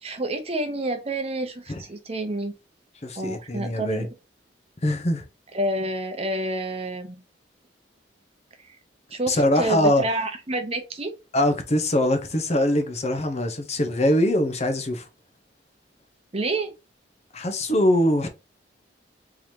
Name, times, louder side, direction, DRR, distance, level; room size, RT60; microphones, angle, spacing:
voice 1, 0.0-2.5 3.2-4.1 5.5-7.1 8.6-8.7 9.1-11.1 16.3-16.7, right 2 dB, 35° right, 0.8 m, -28 dB
voice 2, 3.0-4.1 4.8-5.2 9.3-10.0 11.3-15.0 17.3-18.3, left 1 dB, 40° left, 0.7 m, -22 dB
3.8 x 3.2 x 2.7 m
head